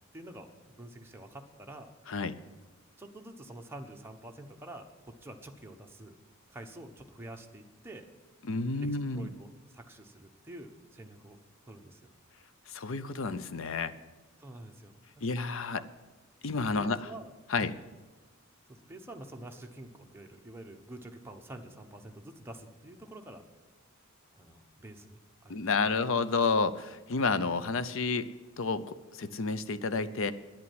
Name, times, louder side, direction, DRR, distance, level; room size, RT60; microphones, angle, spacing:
voice 1, 0.1-1.9 3.0-6.2 6.5-8.1 8.8-11.4 11.7-12.1 14.4-14.9 15.8-15.9 16.7-17.3 17.6-17.7 18.7-23.4 24.4-25.2 25.4-25.6 27.4-27.5, right 1 dB, 10° right, 3 dB, 1.0 m, -47 dB
voice 2, 2.1-2.4 8.4-9.3 12.7-13.9 15.2-15.8 16.4-17.1 17.5-17.7 25.5-28.3 28.6-30.3, left 4 dB, 65° left, 13 dB, 0.6 m, -30 dB
10.5 x 8.5 x 9.3 m, 1.2 s
head